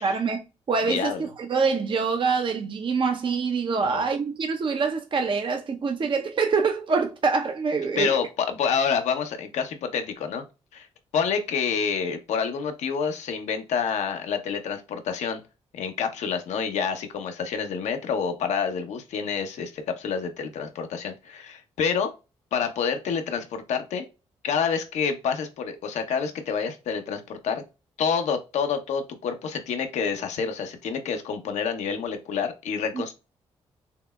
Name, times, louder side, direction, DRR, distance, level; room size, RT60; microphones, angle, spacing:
voice 1, 0.0-8.1, right 5 dB, 45° right, 0.6 m, -25 dB
voice 2, 0.9-1.2 3.8-4.1 8.0-10.4 10.7-10.9 11.1-15.4 15.7-22.1 22.5-24.0 24.4-27.6 28.0-33.1, left 6 dB, 75° left, 0.7 m, -28 dB
5.5 x 2.1 x 2.2 m
supercardioid pair, 45°, 12 cm